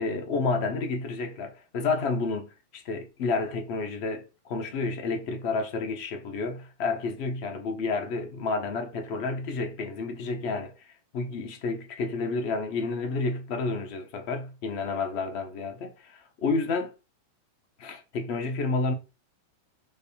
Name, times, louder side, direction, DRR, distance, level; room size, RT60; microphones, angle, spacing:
voice 1, 0.0-10.9 11.1-16.9 17.8-18.9, left 3 dB, 45° left, 0.7 m, -30 dB
3.2 x 2.2 x 2.7 m
figure-of-eight pair, 90°, 0 cm